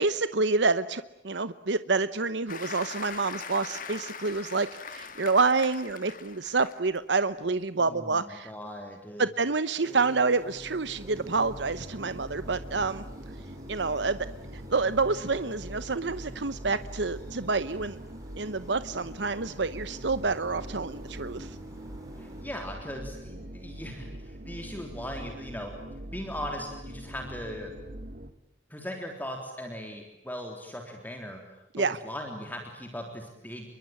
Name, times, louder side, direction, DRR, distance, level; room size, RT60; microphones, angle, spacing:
voice 1, 0.0-8.5 9.2-13.0 13.7-14.2 14.7-18.0 18.4-21.5 31.7-32.0, right 4 dB, 75° right, 13 dB, 1.0 m, -28 dB
Applause, 2.5-7.0 7.4-7.7, left 6 dB, 45° left, 2.0 m, -41 dB
voice 2, 7.8-9.3 22.2-25.7 26.1-27.7 28.7-33.7, equal, 10° left, 3 dB, 3.7 m, -39 dB
sound 1, 9.8-22.4, equal, 20° right, 7.7 m, -49 dB
sound 2, 10.3-28.3, right 1 dB, 50° right, 2.0 m, -43 dB
28.5 x 23.5 x 8.9 m, 0.87 s
head